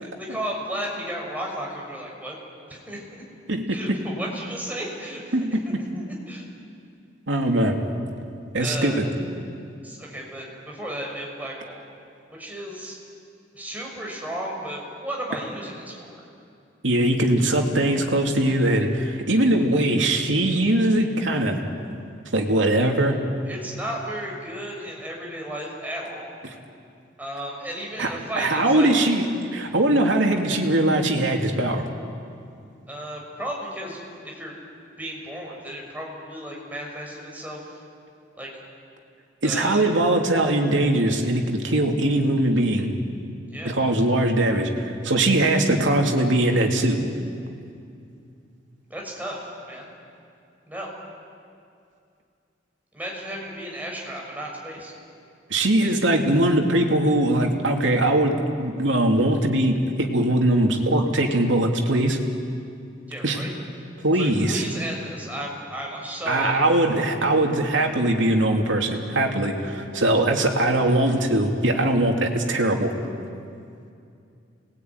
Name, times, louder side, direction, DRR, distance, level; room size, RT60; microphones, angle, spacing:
voice 1, 0.0-2.3 2.7-3.2 3.7-5.3 5.7-6.5 8.6-9.0 9.8-11.8 12.3-13.0 13.5-16.2 23.5-26.3 27.2-28.9 32.9-34.6 35.0-37.7 38.4-38.5 39.4-39.9 43.5-43.8 48.9-49.9 50.7-50.9 52.9-54.9 63.1-63.5 64.1-66.8, right 1 dB, 10° right, -2 dB, 6.2 m, -34 dB
voice 2, 5.3-5.7 7.3-7.8 8.5-9.1 16.8-21.6 22.3-23.2 26.4-26.5 28.0-28.1 28.4-29.3 29.5-31.8 39.4-42.9 43.6-47.0 55.5-62.2 63.2-63.4 64.0-64.6 66.3-72.9, right 1 dB, 80° right, 2 dB, 3.0 m, -21 dB
29.5 x 20.5 x 9.6 m, 2.5 s
head